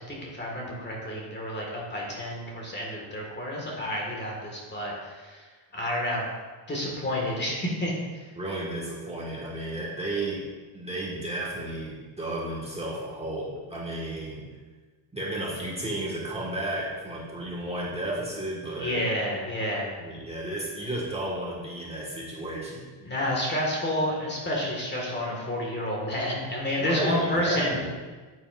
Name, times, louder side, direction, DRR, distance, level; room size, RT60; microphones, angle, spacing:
voice 1, 0.1-5.5 5.7-6.3 6.7-7.9 18.8-19.9 23.0-27.8, left 1 dB, 20° left, -2 dB, 1.8 m, -29 dB
voice 2, 8.3-10.4 10.7-14.5 15.1-19.1 20.0-22.8 26.8-27.9, right 1 dB, 15° right, -5 dB, 1.6 m, -33 dB
8.5 x 8.2 x 2.5 m, 1.4 s
cardioid pair, 135°, 48 cm